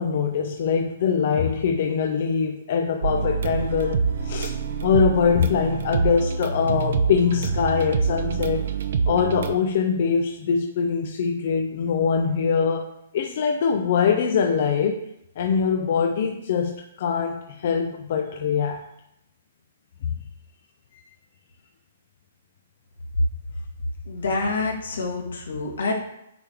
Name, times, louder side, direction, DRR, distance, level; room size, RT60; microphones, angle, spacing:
voice 1, 0.0-4.5 4.8-8.7 9.1-15.0 15.4-18.8, left 6 dB, 40° left, 3 dB, 0.4 m, -23 dB
sound 1, 3.0-9.5, right 5 dB, 55° right, 0.5 m, -26 dB
voice 2, 24.0-25.9, left 3 dB, 90° left, 0 dB, 1.6 m, -26 dB
9.0 x 3.4 x 3.5 m, 0.81 s
hypercardioid pair, 170°, 0 cm